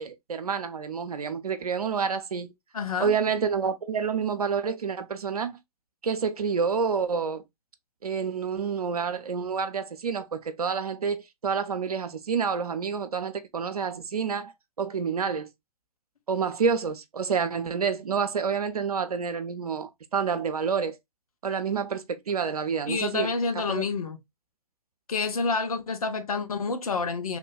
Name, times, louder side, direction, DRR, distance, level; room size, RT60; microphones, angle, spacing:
voice 1, 0.0-2.5 3.0-5.6 6.0-7.4 8.0-15.5 16.3-21.0 21.4-23.3 23.7-23.8, right 6 dB, 80° right, 0.4 m, -28 dB
voice 2, 2.7-3.1 22.9-24.2 25.1-27.4, left 4 dB, 75° left, 0.6 m, -28 dB
3.0 x 2.1 x 2.2 m
figure-of-eight pair, 120°, 19 cm